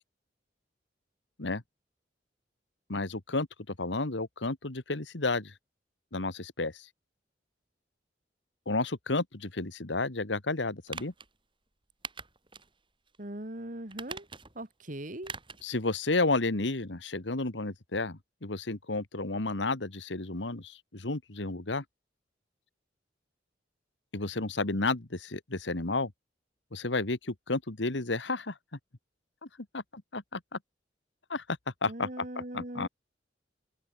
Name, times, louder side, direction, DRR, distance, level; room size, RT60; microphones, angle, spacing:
voice 1, 2.9-5.5 6.1-6.9 8.7-11.1 15.6-21.8 24.1-26.1 26.7-28.5 29.7-30.6 31.3-32.3 32.5-32.9, left 3 dB, 75° left, 1.8 m, -32 dB
sound 1, 10.9-11.3 12.0-12.7 13.1-13.2 13.9-14.6 15.2-15.7 16.0-16.1, right 5 dB, 30° right, 6.2 m, -42 dB
voice 2, 13.2-14.3 14.5-15.3 31.9-32.9, right 1 dB, 45° right, 3.1 m, -40 dB
open air
head